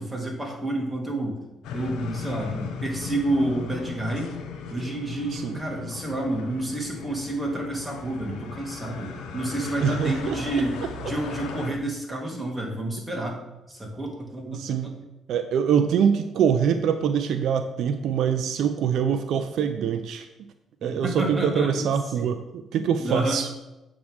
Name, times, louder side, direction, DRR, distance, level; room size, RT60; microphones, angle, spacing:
voice 1, 0.0-1.4 1.7-4.3 4.7-15.0 20.8-21.9 22.1-22.3 23.0-23.4, right 1 dB, 10° right, -1 dB, 2.2 m, -29 dB
sound 1, 1.6-11.7, left 5 dB, 85° left, 0.9 m, -37 dB
voice 2, 9.8-10.4 14.5-14.9 15.3-20.3 20.8-23.5, right 7 dB, 75° right, 9 dB, 0.5 m, -24 dB
8.4 x 3.7 x 6.3 m, 0.96 s
cardioid pair, 90°, 0 cm